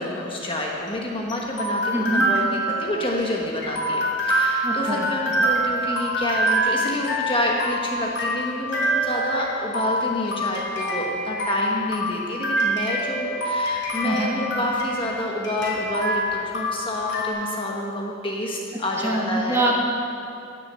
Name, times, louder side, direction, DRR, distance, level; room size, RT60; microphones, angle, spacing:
voice 1, 0.0-19.6, left 1 dB, 25° left, -1 dB, 1.1 m, -28 dB
sound 1, 0.6-17.3, right 1 dB, 55° left, 2.8 m, -26 dB
voice 2, 1.9-2.3 4.6-5.1 14.0-14.4 19.0-19.8, right 1 dB, 15° right, -2 dB, 1.6 m, -24 dB
17.5 x 6.7 x 6.8 m, 2.5 s
head